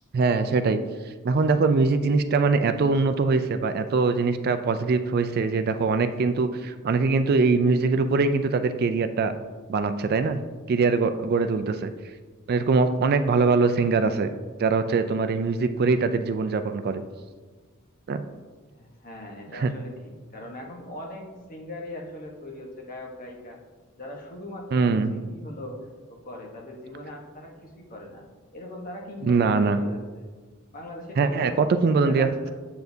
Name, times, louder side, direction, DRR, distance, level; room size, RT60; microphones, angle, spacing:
voice 1, 0.1-0.8 1.2-9.3 9.7-10.4 10.7-11.9 12.5-14.3 14.6-17.0 18.1-18.2 19.5-19.7 24.7-25.1 29.2-29.8 31.2-32.5, right 4 dB, 45° right, 10 dB, 0.3 m, -22 dB
voice 2, 18.7-23.6 24.0-25.8 26.1-28.2 28.5-30.3 30.7-31.7 32.0-32.5, left 1 dB, 40° left, 0 dB, 1.1 m, -40 dB
7.7 x 7.0 x 2.7 m, 1.4 s
head